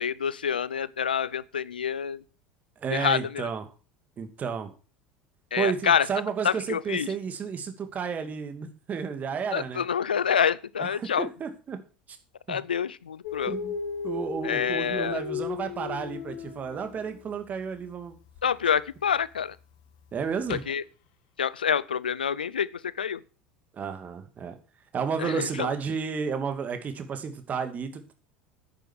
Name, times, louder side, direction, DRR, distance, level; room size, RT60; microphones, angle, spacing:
voice 1, 0.0-2.2 2.9-3.5 5.5-6.1 6.4-7.1 9.5-11.3 12.5-13.5 14.4-15.2 18.4-19.6 20.5-20.8 21.4-23.2 25.2-25.7, left 7 dB, 80° left, 0.6 m, -27 dB
voice 2, 2.8-3.6 4.2-4.7 5.6-9.8 11.0-11.8 12.1-12.2 12.5-12.6 13.5-13.7 14.0-18.2 20.1-20.6 23.7-24.6 24.9-28.2, right 6 dB, 30° right, 2.4 m, -32 dB
Dog, 13.2-17.2 18.3-18.4 20.5-20.6, left 6 dB, 60° left, 1.8 m, -35 dB
10.0 x 9.2 x 6.3 m
figure-of-eight pair, 70°, 5 cm